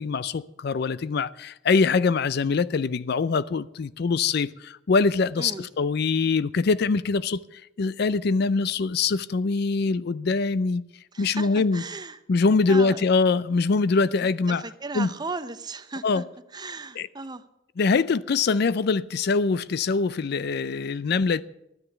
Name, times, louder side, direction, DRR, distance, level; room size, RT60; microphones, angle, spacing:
voice 1, 0.0-10.8 11.2-11.8 12.3-14.7 14.9-15.1 16.0-16.2 17.0-17.1 17.8-21.4, left 4 dB, 55° left, 0.4 m, -23 dB
voice 2, 5.4-5.7 11.1-12.2 12.7-13.0 14.2-16.2 16.5-17.4, right 3 dB, 20° right, 0.7 m, -36 dB
13.0 x 10.0 x 7.9 m
head